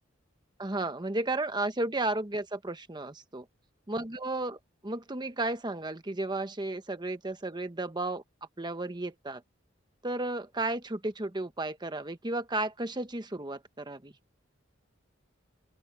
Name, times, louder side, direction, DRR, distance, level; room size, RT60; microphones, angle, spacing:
voice 1, 0.6-3.5 3.9-8.2 8.6-9.4 10.0-14.1, right 2 dB, 20° right, 1.2 m, -33 dB
open air
head